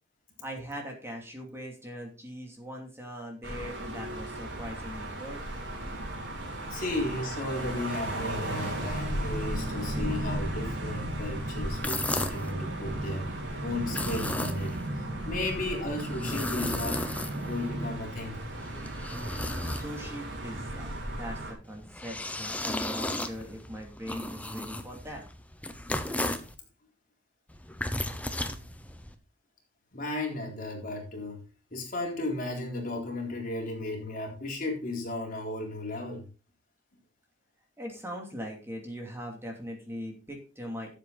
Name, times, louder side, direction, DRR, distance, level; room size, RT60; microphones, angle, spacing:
voice 1, 0.4-5.4 6.7-6.9 19.6-25.2 37.8-41.0, equal, 15° right, 1 dB, 2.8 m, -41 dB
sound 1, 3.4-21.5, right 1 dB, 70° right, 4.4 m, -37 dB
voice 2, 6.7-13.3 13.6-17.0 17.4-18.4 29.9-31.4 31.7-36.3, left 2 dB, 50° left, 0 dB, 3.9 m, -34 dB
sound 2, 8.4-17.9, right 1 dB, 90° right, 2.7 m, -37 dB
sound 3, 11.7-12.5 13.8-14.9 15.9-17.7 18.4-20.2 21.6-26.5 27.5-29.1, left 1 dB, 10° left, 1.0 m, -35 dB
13.0 x 7.8 x 4.1 m, 0.32 s
head